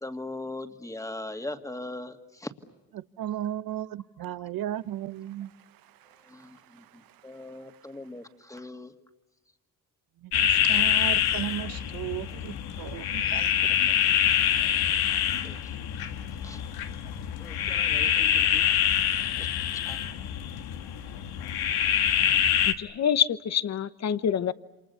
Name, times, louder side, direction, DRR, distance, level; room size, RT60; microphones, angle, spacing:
voice 1, 0.0-2.5 6.2-8.9 14.7-14.8 15.4-15.7 16.4-16.6 17.4-18.6 19.4-19.5 19.7-20.0, left 2 dB, 10° left, 6 dB, 2.3 m, -40 dB
voice 2, 3.2-5.5 6.0-6.2 10.2-14.0, right 12 dB, 65° right, 15 dB, 1.0 m, -35 dB
sound 1, 10.3-22.7, left 10 dB, 85° left, 1.6 m, -25 dB
voice 3, 22.7-24.5, left 8 dB, 45° left, 14 dB, 1.1 m, -26 dB
28.5 x 27.0 x 7.1 m, 1.1 s
cardioid pair, 95°, 37 cm